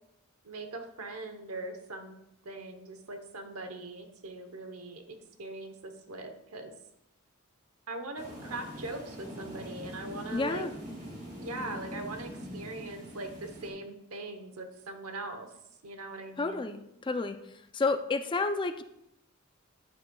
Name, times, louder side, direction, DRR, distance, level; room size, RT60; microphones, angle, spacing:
voice 1, 0.4-6.7 7.9-10.7 11.3-15.5 15.8-16.7, right 2 dB, 90° right, 6 dB, 1.0 m, -41 dB
sound 1, 8.2-13.7, equal, 35° right, 2.2 m, -43 dB
voice 2, 10.3-10.7 16.4-17.4 17.7-18.8, left 3 dB, 20° left, 9 dB, 0.4 m, -30 dB
9.0 x 7.9 x 2.3 m, 0.82 s
head